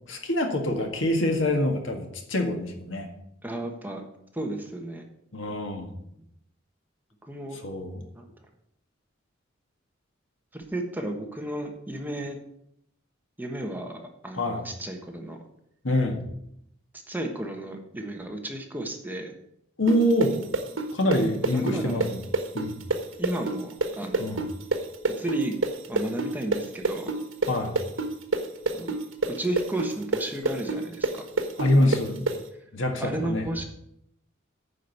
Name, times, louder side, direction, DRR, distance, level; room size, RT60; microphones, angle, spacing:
voice 1, 0.1-3.1 5.3-6.0 7.6-8.0 14.4-14.6 15.8-16.2 19.8-20.3 20.9-22.2 22.5-22.8 24.2-24.4 27.5-27.8 31.6-32.2 32.7-33.4, left 1 dB, 70° left, 3 dB, 1.8 m, -25 dB
voice 2, 3.4-4.0 4.3-5.0 7.2-7.6 8.2-8.3 10.5-12.4 13.4-15.4 16.9-19.3 21.4-22.0 23.2-24.5 25.1-25.6 25.9-27.1 28.7-28.9 29.4-31.2 33.0-33.6, right 1 dB, 10° right, 2 dB, 1.3 m, -33 dB
sound 1, 19.9-27.5 27.8-32.4, right 2 dB, 85° right, 1.4 m, -26 dB
9.5 x 5.2 x 8.1 m, 0.76 s
head